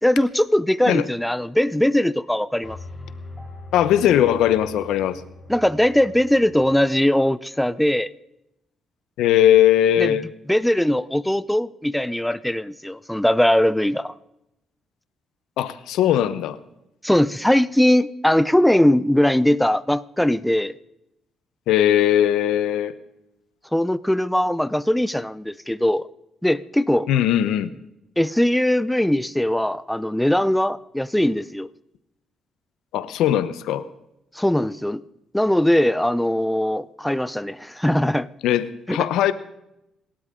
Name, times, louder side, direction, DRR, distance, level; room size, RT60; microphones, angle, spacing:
voice 1, 0.0-2.8 5.5-8.1 10.0-10.1 10.5-14.1 17.0-20.7 23.7-26.1 26.4-27.1 28.2-31.7 34.3-35.0 35.3-38.3 38.9-39.1, left 1 dB, 5° left, 0.6 m, -20 dB
sound 1, 2.6-6.8, left 2 dB, 20° left, 4.9 m, -41 dB
voice 2, 3.7-5.2 9.2-10.2 15.6-16.6 21.7-22.9 27.1-27.7 32.9-33.9 38.4-39.3, left 11 dB, 90° left, 0.9 m, -19 dB
28.0 x 12.5 x 3.8 m
cardioid pair, 90°, 0 cm